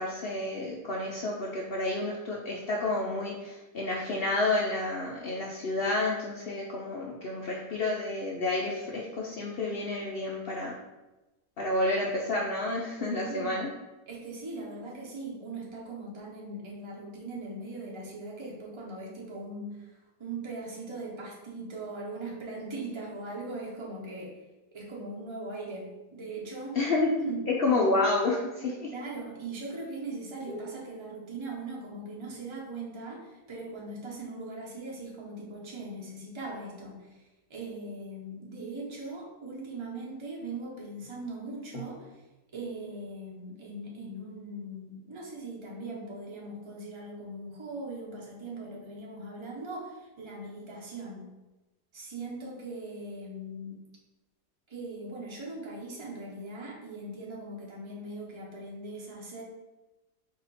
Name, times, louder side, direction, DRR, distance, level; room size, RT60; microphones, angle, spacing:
voice 1, 0.0-10.7 11.6-13.7 26.7-27.1 27.5-28.9 30.5-30.6 41.7-41.8, left 2 dB, 75° left, -3 dB, 0.5 m, -30 dB
voice 2, 13.1-13.6 14.1-24.4 24.7-26.8 27.2-27.8 28.9-37.2 37.5-42.2 42.5-51.3 51.9-53.9 54.7-59.4, right 2 dB, 25° right, -2 dB, 0.6 m, -40 dB
4.2 x 2.8 x 4.0 m, 1.1 s
omnidirectional pair, 1.7 m